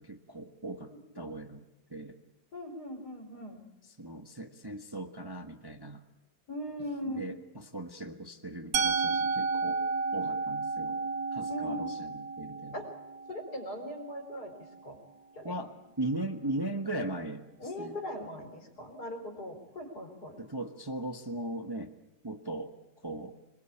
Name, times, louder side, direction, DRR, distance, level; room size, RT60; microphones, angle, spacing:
voice 1, 0.0-1.6 1.9-2.2 4.0-6.0 7.0-9.8 10.1-11.0 11.3-12.8 15.4-17.5 17.8-18.0 20.4-21.9 22.2-22.8 23.0-23.4, right 1 dB, 15° right, 5 dB, 1.3 m, -38 dB
voice 2, 2.5-3.6 6.5-7.2 11.5-11.9 12.7-12.9 13.3-14.5 14.8-15.0 15.3-15.7 17.6-20.4, equal, 60° left, 5 dB, 4.7 m, -39 dB
Musical instrument, 8.7-14.6, right 4 dB, 85° right, 2.0 m, -32 dB
26.0 x 21.0 x 8.6 m, 0.91 s
omnidirectional pair, 1.9 m